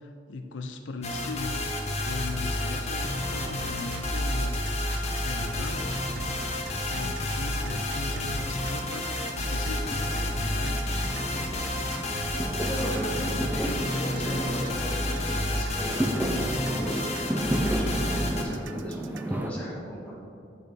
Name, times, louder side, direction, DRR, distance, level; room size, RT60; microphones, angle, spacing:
voice 1, 0.0-1.5 2.0-4.7 5.2-5.9 6.9-9.1 9.3-10.8, left 3 dB, 75° left, 6 dB, 0.4 m, -38 dB
sound 1, 1.0-18.4, left 1 dB, 35° left, 0.8 m, -30 dB
Fireworks, 3.0-4.0 4.2-19.5, equal, 10° right, 0.3 m, -34 dB
sound 2, 3.4-19.4, right 5 dB, 75° right, 0.4 m, -42 dB
voice 2, 12.6-20.1, equal, 5° left, -7 dB, 1.6 m, -37 dB
8.2 x 6.6 x 3.3 m, 2.6 s
head